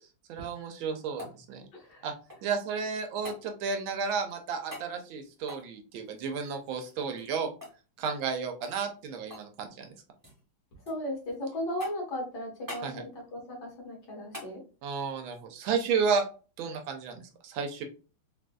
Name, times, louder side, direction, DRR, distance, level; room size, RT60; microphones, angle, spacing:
voice 1, 0.3-1.6 2.0-2.1 2.4-7.5 8.0-9.9 12.8-13.0 14.8-16.3 16.6-17.8, right 5 dB, 80° right, 5 dB, 1.4 m, -32 dB
sound 1, 0.6-2.6 3.2-3.4 4.7-4.9 5.4-7.4 7.6-7.8 8.0-8.3 8.6-9.5 9.8-10.4 10.9-11.4 11.8-12.2 12.7-12.9 14.3-14.5 16.9-17.0, left 1 dB, 15° right, 0.8 m, -46 dB
voice 2, 1.7-2.1 10.9-14.6, left 1 dB, 55° left, -2 dB, 1.8 m, -36 dB
3.9 x 2.5 x 2.2 m, 0.35 s
omnidirectional pair, 2.2 m